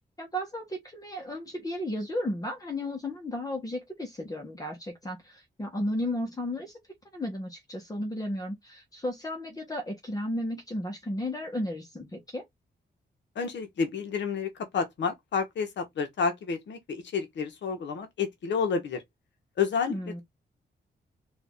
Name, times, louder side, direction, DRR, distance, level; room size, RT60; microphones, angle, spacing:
voice 1, 0.2-6.8 7.1-12.4 19.9-20.2, left 1 dB, 20° left, 1.2 m, -34 dB
voice 2, 13.3-19.0 19.6-19.9, left 5 dB, 85° left, 1.3 m, -30 dB
4.2 x 2.8 x 3.7 m
wide cardioid pair, 145°, 18 cm